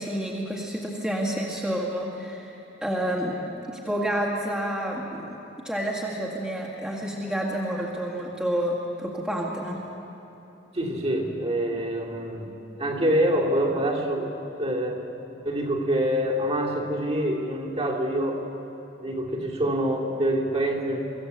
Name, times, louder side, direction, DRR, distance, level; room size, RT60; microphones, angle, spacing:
voice 1, 0.0-2.6 2.8-3.4 3.7-5.4 5.6-9.8, equal, 5° right, -4 dB, 1.9 m, -29 dB
voice 2, 10.7-12.5 12.8-14.3 14.6-15.0 15.4-18.5 19.0-21.0, right 1 dB, 35° right, -2 dB, 2.7 m, -26 dB
24.5 x 14.5 x 8.1 m, 3.0 s
head